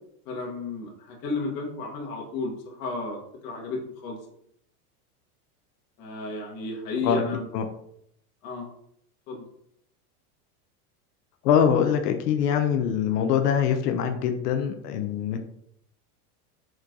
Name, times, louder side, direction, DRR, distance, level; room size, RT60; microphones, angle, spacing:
voice 1, 0.2-4.2 6.0-7.5 8.4-8.7 9.3-9.4, left 3 dB, 50° left, -1 dB, 1.5 m, -33 dB
voice 2, 11.4-15.4, left 8 dB, 90° left, 6 dB, 0.7 m, -23 dB
4.5 x 4.4 x 2.6 m, 0.72 s
supercardioid pair, 130°, 47 cm